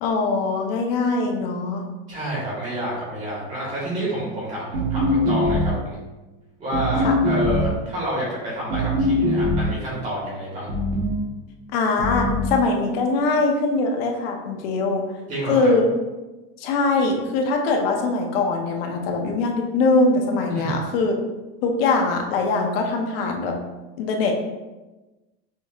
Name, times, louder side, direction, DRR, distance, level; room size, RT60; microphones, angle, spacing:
voice 1, 0.0-1.8 7.0-7.2 11.7-15.0 15.5-15.8 16.6-21.2 21.6-23.5 24.0-24.3, left 3 dB, 70° left, 2 dB, 0.8 m, -22 dB
voice 2, 2.1-6.0 6.6-10.7 15.3-15.7 20.5-20.8, right 1 dB, 25° right, -5 dB, 1.5 m, -29 dB
sound 1, 4.7-5.9 6.7-7.8 8.7-9.8 10.7-11.3 12.0-12.6, left 1 dB, 55° right, 1.1 m, -22 dB
6.2 x 2.8 x 2.4 m, 1.1 s
cardioid pair, 180°, 31 cm